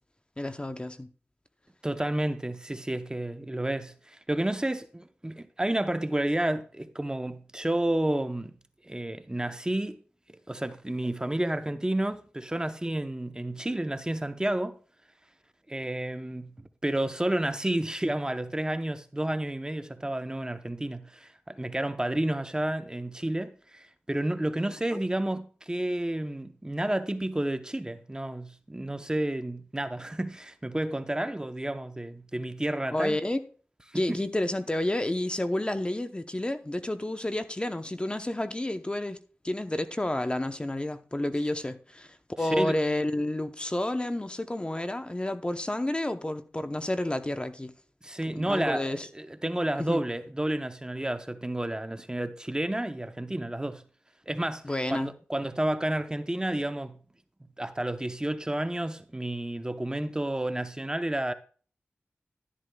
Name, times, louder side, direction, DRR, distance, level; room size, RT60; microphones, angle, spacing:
voice 1, 0.4-1.1 24.9-25.0 32.9-33.4 33.9-39.2 39.4-47.7 48.3-49.1 49.8-50.0 54.6-55.1, left 1 dB, 25° left, 0.8 m, -30 dB
voice 2, 1.8-8.6 8.8-10.0 10.5-14.8 15.7-33.2 33.9-34.2 42.5-42.8 48.0-53.8 54.3-57.0 57.6-61.3, right 1 dB, 15° right, 0.8 m, -31 dB
12.0 x 11.0 x 2.3 m
cardioid pair, 55°, 4 cm